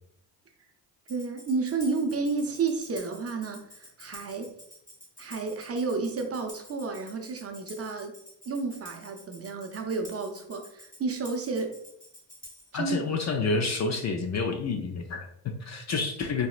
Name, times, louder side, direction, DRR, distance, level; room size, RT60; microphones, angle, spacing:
Tambourine, 1.1-12.8, left 1 dB, 15° left, 1.3 m, -50 dB
voice 1, 1.1-4.6 5.2-8.1 8.5-11.8 12.7-13.0, right 4 dB, 30° right, 4 dB, 0.5 m, -31 dB
voice 2, 12.7-16.5, left 4 dB, 40° left, 5 dB, 0.4 m, -29 dB
3.9 x 2.0 x 2.4 m, 0.74 s
supercardioid pair, 60°, 47 cm